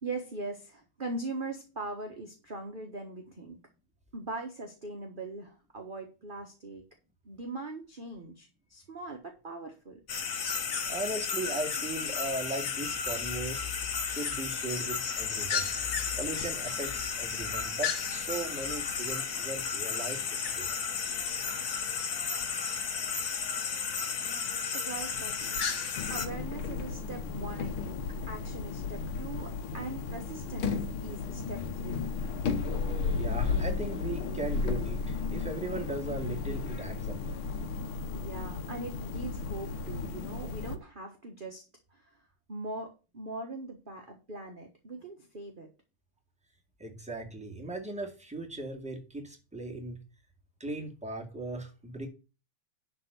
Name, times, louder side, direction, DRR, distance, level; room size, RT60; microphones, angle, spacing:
voice 1, 0.0-3.6 4.1-6.8 7.2-10.0 24.7-25.7 26.1-32.1 38.1-41.6 41.9-42.1 42.5-45.7, right 2 dB, 30° right, 2 dB, 1.3 m, -41 dB
sound 1, 10.1-26.3, left 6 dB, 50° left, 1.6 m, -33 dB
voice 2, 10.9-13.7 14.0-20.7 33.1-37.2 46.8-50.0 50.6-52.1, right 2 dB, 5° right, 1 dB, 1.9 m, -38 dB
sound 2, 26.0-40.8, left 5 dB, 85° left, 1.8 m, -34 dB
11.0 x 4.1 x 6.7 m, 0.32 s
omnidirectional pair, 2.3 m